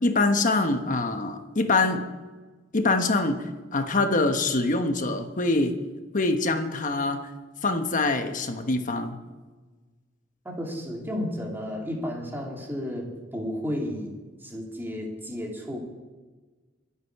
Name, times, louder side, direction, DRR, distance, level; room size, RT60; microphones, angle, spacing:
voice 1, 0.0-2.0 2.7-3.4 3.7-5.8 6.1-7.3 7.6-9.2, left 2 dB, 40° left, 7 dB, 1.2 m, -24 dB
voice 2, 10.4-15.8, left 1 dB, 10° right, -1 dB, 2.6 m, -33 dB
24.0 x 8.5 x 4.8 m, 1.3 s
head